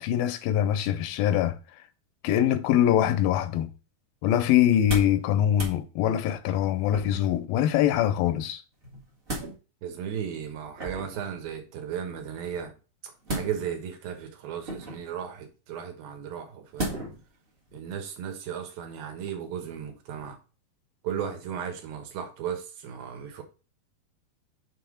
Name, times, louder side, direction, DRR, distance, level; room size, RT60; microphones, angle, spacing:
voice 1, 0.0-1.6 2.2-3.7 4.2-8.6, left 11 dB, 80° left, 2.3 m, -23 dB
sound 1, 4.7-5.2 5.5-5.8 6.9-7.4 8.8-9.5 10.8-11.2 13.2-13.9 14.6-15.1 16.8-17.3 17.7-17.8, right 1 dB, 45° right, 0.7 m, -35 dB
voice 2, 9.8-12.7 13.0-17.0 17.7-20.4 21.0-23.4, right 8 dB, 75° right, 3.0 m, -35 dB
7.0 x 3.7 x 4.8 m
omnidirectional pair, 4.3 m